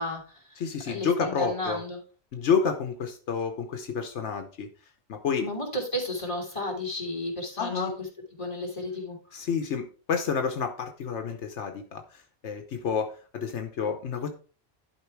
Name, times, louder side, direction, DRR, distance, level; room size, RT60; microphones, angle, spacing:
voice 1, 0.0-0.4 0.9-2.0 5.4-7.9 8.4-9.2, left 1 dB, 25° left, 1 dB, 3.1 m, -32 dB
voice 2, 0.6-1.8 2.3-4.7 5.1-5.5 7.6-7.9 9.3-14.3, left 6 dB, 80° left, 5 dB, 1.2 m, -29 dB
11.5 x 4.7 x 4.6 m, 0.38 s
omnidirectional pair, 1.2 m